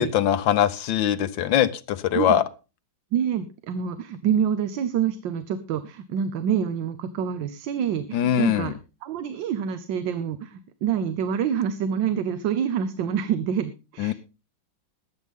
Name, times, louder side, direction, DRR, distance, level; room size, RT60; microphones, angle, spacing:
voice 1, 0.0-2.4 8.1-8.7 14.0-14.1, left 10 dB, 80° left, 12 dB, 1.6 m, -22 dB
voice 2, 3.1-8.7 9.0-14.1, right 8 dB, 75° right, 11 dB, 1.5 m, -27 dB
21.5 x 7.9 x 3.6 m, 0.31 s
omnidirectional pair, 2.0 m